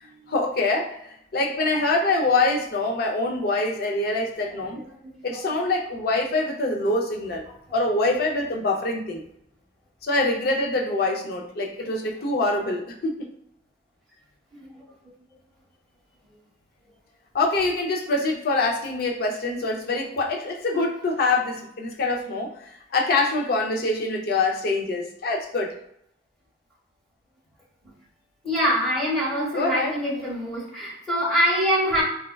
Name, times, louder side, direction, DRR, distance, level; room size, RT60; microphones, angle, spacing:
voice 1, 0.0-4.8 5.2-7.4 7.7-9.2 10.0-13.3 17.3-25.8 29.5-30.0, left 2 dB, 55° left, 1 dB, 0.5 m, -25 dB
voice 2, 4.8-5.4 14.5-14.7 28.4-32.0, equal, ahead, -6 dB, 0.9 m, -25 dB
3.5 x 2.2 x 2.2 m, 0.73 s
head